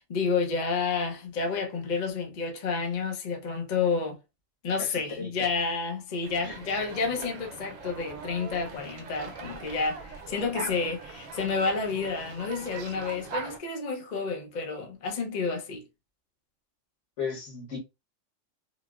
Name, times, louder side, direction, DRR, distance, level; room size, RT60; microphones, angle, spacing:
voice 1, 0.0-4.2 4.6-15.8, left 4 dB, 45° left, 0.6 m, -30 dB
voice 2, 4.8-5.3 6.4-6.6 17.2-17.8, left 5 dB, 65° left, 1.4 m, -35 dB
sound 1, 6.2-13.6, right 5 dB, 75° right, 1.0 m, -41 dB
3.8 x 2.0 x 2.3 m
omnidirectional pair, 1.4 m